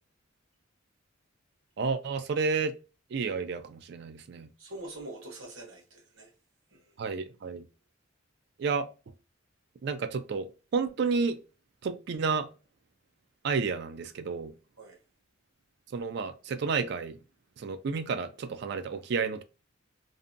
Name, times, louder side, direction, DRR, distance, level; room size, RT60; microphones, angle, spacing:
voice 1, 1.8-2.7 3.1-4.5 7.0-7.6 8.6-8.9 9.8-11.4 11.8-12.5 13.4-14.5 15.9-17.2 17.6-19.4, right 5 dB, 55° right, 0.3 m, -31 dB
voice 2, 4.6-6.3 6.7-6.9 14.8-15.0, right 2 dB, 75° right, 1.0 m, -44 dB
2.6 x 2.2 x 2.5 m
head